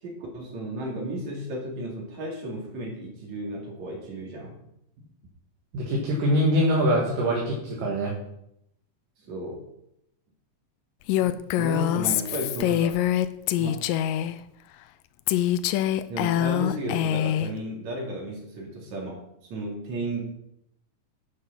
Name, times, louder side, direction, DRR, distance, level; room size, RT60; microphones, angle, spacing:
voice 1, 0.0-4.6 9.2-9.6 11.2-13.1 13.6-13.7 16.1-20.2, right 1 dB, 55° right, -1 dB, 3.9 m, -34 dB
voice 2, 5.7-8.1, equal, 70° right, -2 dB, 3.4 m, -23 dB
Female speech woman speaking, 11.1-14.4 15.3-17.5, left 12 dB, 85° left, 2.2 m, -24 dB
11.0 x 7.6 x 5.7 m, 0.78 s
omnidirectional pair, 3.9 m